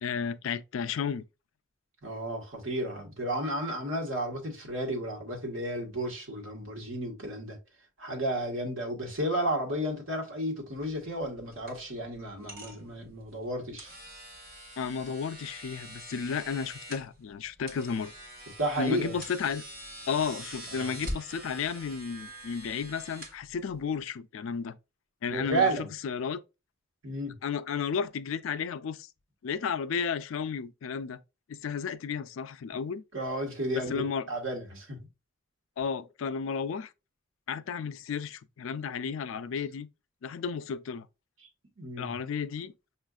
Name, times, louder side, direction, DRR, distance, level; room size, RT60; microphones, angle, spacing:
voice 1, 0.0-1.2 14.8-18.1 18.8-19.6 20.1-24.8 25.2-25.7 26.0-26.4 27.4-29.1 29.4-31.2 31.5-33.0 33.7-34.3 35.8-36.9 37.5-39.9 40.2-41.1 42.0-42.7, left 6 dB, 70° left, 0.4 m, -33 dB
voice 2, 2.0-7.6 8.0-13.9 18.6-19.1 20.7-20.9 25.3-25.9 27.0-27.4 33.1-35.1 41.8-42.1, right 1 dB, 70° right, 1.5 m, -32 dB
sound 1, 10.7-24.0, right 1 dB, 50° right, 1.5 m, -45 dB
6.1 x 2.5 x 2.4 m
head